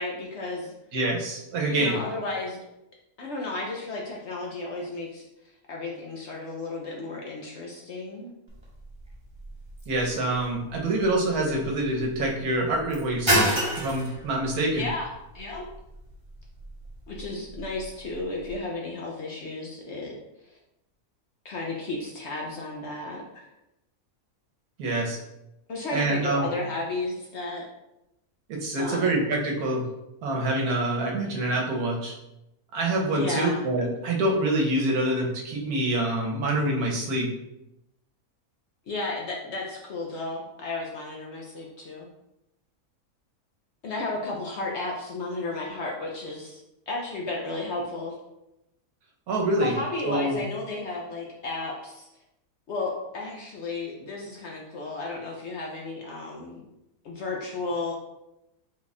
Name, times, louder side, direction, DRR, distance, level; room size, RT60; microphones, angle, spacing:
voice 1, 0.0-0.7 1.7-2.6 3.2-5.2 5.7-8.3 14.7-15.1 15.3-15.6 17.1-20.1 21.4-23.4 25.7-27.7 28.8-29.2 33.1-33.7 38.9-42.1 43.8-48.1 49.6-52.1 52.7-56.7 57.0-57.9, left 2 dB, 60° left, -1 dB, 0.7 m, -33 dB
voice 2, 0.9-2.0 9.9-13.5 13.8-14.8 24.8-25.2 25.9-26.5 28.5-29.8 30.2-32.1 32.7-37.3 49.3-49.7 50.0-50.4, right 1 dB, 75° right, 0 dB, 1.3 m, -26 dB
sound 1, 8.5-18.6, equal, 25° right, 0.8 m, -32 dB
4.2 x 2.4 x 4.0 m, 0.89 s
omnidirectional pair, 1.6 m